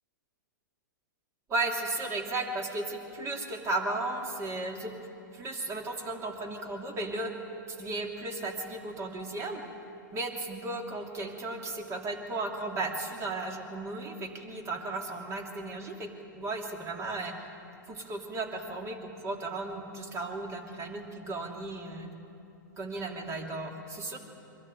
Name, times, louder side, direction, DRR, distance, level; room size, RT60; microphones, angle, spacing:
voice 1, 1.5-4.9 5.3-7.3 7.7-9.6 10.1-16.1 16.3-17.3 17.9-22.1 22.8-24.2, right 2 dB, 25° right, 3 dB, 2.8 m, -35 dB
24.0 x 13.0 x 9.4 m, 2.8 s
hypercardioid pair, 120°, 11 cm